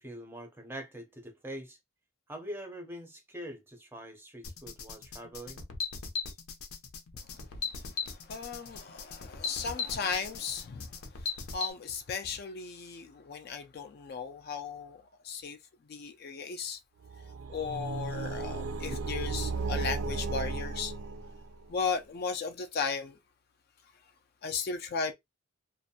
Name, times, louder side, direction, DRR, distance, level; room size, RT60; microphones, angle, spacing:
voice 1, 0.0-1.8 2.3-5.6, right 1 dB, 10° right, 0.5 m, -43 dB
sound 1, 4.4-11.7, left 5 dB, 90° left, 0.6 m, -38 dB
voice 2, 8.3-10.9 11.5-15.0 15.2-15.6 15.9-16.8 17.5-20.9 21.7-23.1 24.4-25.1, left 5 dB, 45° left, 0.3 m, -35 dB
sound 2, 17.0-21.7, right 4 dB, 85° right, 0.5 m, -35 dB
2.5 x 2.1 x 2.7 m
head